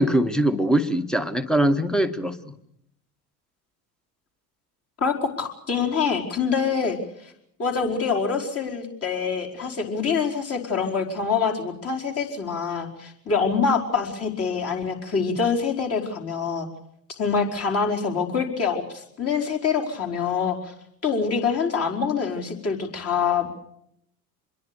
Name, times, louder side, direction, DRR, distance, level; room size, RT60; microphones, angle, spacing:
voice 1, 0.0-2.5, right 1 dB, ahead, 11 dB, 1.7 m, -22 dB
voice 2, 5.0-7.3 7.6-16.7 17.2-20.7 21.0-23.5, left 5 dB, 30° left, 0 dB, 4.9 m, -25 dB
26.5 x 22.0 x 6.9 m, 0.74 s
figure-of-eight pair, 70°, 48 cm